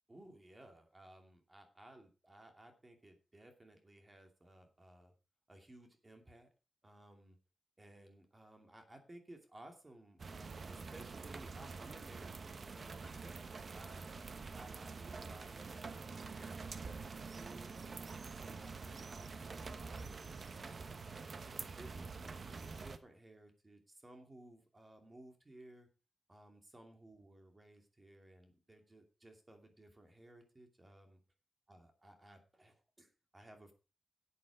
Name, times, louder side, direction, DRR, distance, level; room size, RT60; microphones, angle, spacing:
voice 1, 0.1-5.1 5.5-6.5 6.8-7.4 7.8-14.3 14.5-21.0 21.4-25.9 26.3-31.2 31.7-33.7, right 1 dB, 25° right, 5 dB, 2.6 m, -59 dB
sound 1, 10.2-23.0, right 4 dB, 50° right, 1.1 m, -46 dB
12.5 x 8.4 x 4.8 m, 0.33 s
wide cardioid pair, 110°, 0 cm